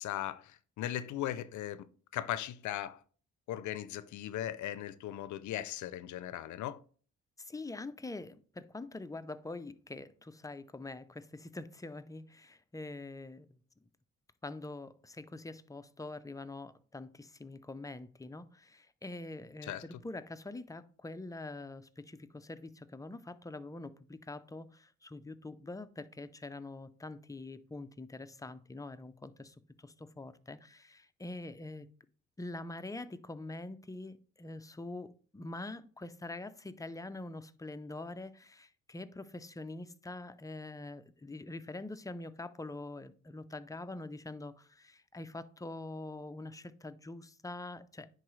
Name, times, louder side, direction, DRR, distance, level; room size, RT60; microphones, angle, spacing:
voice 1, 0.0-1.9 2.1-3.0 3.5-6.8 19.6-19.8, left 12 dB, 75° left, 0.5 m, -38 dB
voice 2, 7.4-13.5 14.4-31.9 32.4-48.1, left 2 dB, 10° left, 0.5 m, -44 dB
9.9 x 4.0 x 3.1 m
cardioid pair, 90°, 30 cm